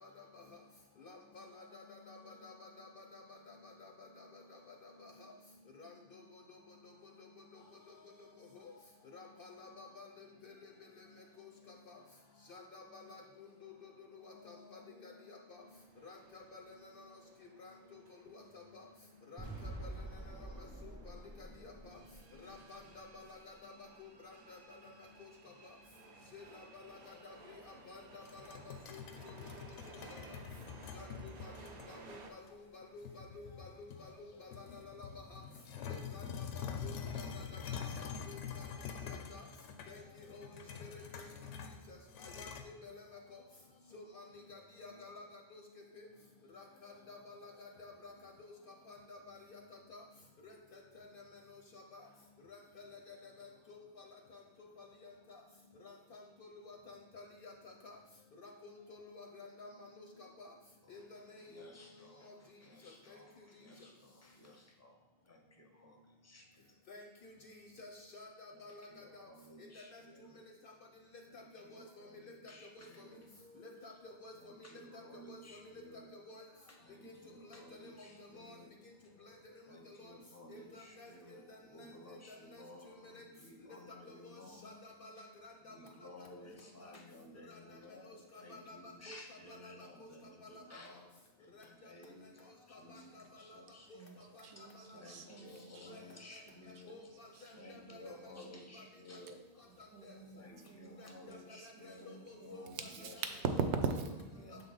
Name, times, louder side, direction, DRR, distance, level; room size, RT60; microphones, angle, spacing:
voice 1, 0.0-0.4 1.0-4.6 5.0-5.1 5.8-6.6 6.8-7.1 7.5-7.6 7.9-8.0 8.5-8.7 9.1-10.7 11.0-11.1 11.4-11.9 12.5-15.6 16.0-17.2 17.6-18.0 18.3-18.8 19.3-22.0 22.4-23.7 24.0-24.9 25.2-25.3 26.3-30.2 30.9-35.4 35.9-38.7 39.0-39.4 39.9-40.5 40.8-41.3 41.9-43.0 43.3-43.4 43.9-44.2 44.5-45.2 45.5-45.6 46.0-46.1 46.5-48.5 48.9-50.0 50.4-51.2 51.5-52.0 52.5-54.1 54.8-55.4 55.8-58.0 58.4-60.5 60.9-61.7 62.2-62.3 62.8-63.2 66.9-69.3 69.7-70.0 71.3-72.1 72.8-72.9 73.6-74.5 74.9-75.0 75.3-75.6 76.1-76.4 77.0-77.1 77.4-78.1 78.4-78.6 79.2-79.3 80.0-80.1 80.5-81.1 81.5-81.9 82.3-83.2 84.1-84.2 84.6-85.7 86.8-86.9 87.5-87.6 88.1-89.7 90.0-90.1 90.4-90.5 91.5-91.6 92.7-93.2 93.9-94.0 94.9-95.0 95.9-96.0 96.9-98.3 98.7-98.8 101.0-103.1 103.6-103.7, left 3 dB, 60° left, 2 dB, 0.7 m, -53 dB
sound 1, 15.6-32.3, right 3 dB, 50° right, 0.5 m, -58 dB
sound 2, 19.4-23.5, right 1 dB, 20° right, 1.0 m, -48 dB
sound 3, 28.2-31.9 32.5-32.6 33.0-34.2 34.5-42.6, left 7 dB, 90° left, 0.9 m, -45 dB
voice 2, 60.8-66.8 68.5-70.4 71.2-73.3 74.3-76.1 76.7-78.7 79.6-84.7 85.1-85.3 85.6-93.9 94.6-96.9 97.3-99.4 100.3-103.7 104.4-104.6, left 1 dB, 20° left, 1 dB, 0.5 m, -56 dB
voice 3, 94.4-96.1 96.5-96.6 96.9-97.1 97.4-98.8 99.9-104.6, right 5 dB, 70° right, 7 dB, 0.9 m, -42 dB
6.7 x 3.7 x 3.9 m, 1.1 s
omnidirectional pair, 1.2 m